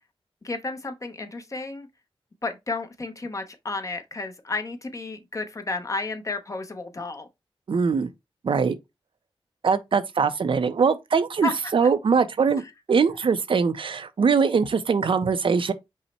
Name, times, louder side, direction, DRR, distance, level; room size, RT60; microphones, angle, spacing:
voice 1, 0.4-1.9 2.4-7.3 11.4-11.5, left 3 dB, 35° left, 0.8 m, -32 dB
voice 2, 7.7-8.1 8.4-8.8 9.6-12.6 12.9-15.7, right 5 dB, 65° right, 0.5 m, -22 dB
5.5 x 2.1 x 4.2 m
wide cardioid pair, 100°, 10 cm